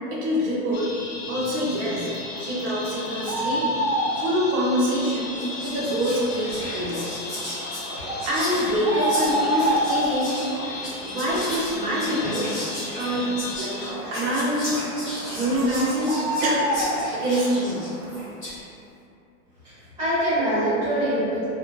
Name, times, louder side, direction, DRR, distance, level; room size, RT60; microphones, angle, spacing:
voice 1, 0.1-0.9 1.3-2.1 2.4-3.7 4.2-5.3 5.6-7.0 8.3-10.4 11.0-12.5 12.9-13.3 13.6-13.7 14.1-14.8 15.3-16.7 17.1-17.8, equal, 75° right, -6 dB, 0.8 m, -25 dB
sound 1, 0.7-13.9, left 3 dB, 65° left, 0.5 m, -36 dB
sound 2, 1.9-18.2, right 1 dB, 45° right, 0.4 m, -31 dB
Whispering, 4.8-5.0 5.3-18.6, left 1 dB, 15° left, 0.3 m, -35 dB
voice 2, 19.6-21.5, right 1 dB, 10° right, -16 dB, 0.8 m, -24 dB
2.7 x 2.2 x 2.4 m, 2.6 s
supercardioid pair, 175°, 44 cm